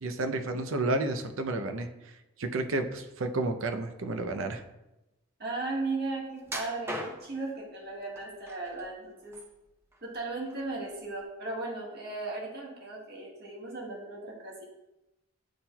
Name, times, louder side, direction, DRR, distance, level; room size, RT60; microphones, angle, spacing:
voice 1, 0.0-1.9 2.4-4.6, right 2 dB, 70° right, 7 dB, 0.6 m, -31 dB
voice 2, 5.4-9.4 10.0-14.6, right 3 dB, 50° right, -3 dB, 1.5 m, -36 dB
sound 1, 6.4-7.5 8.2-8.8 9.2-10.1 10.5-10.7 11.2-11.3, equal, 10° right, 0.6 m, -38 dB
10.5 x 4.3 x 2.3 m, 0.96 s
head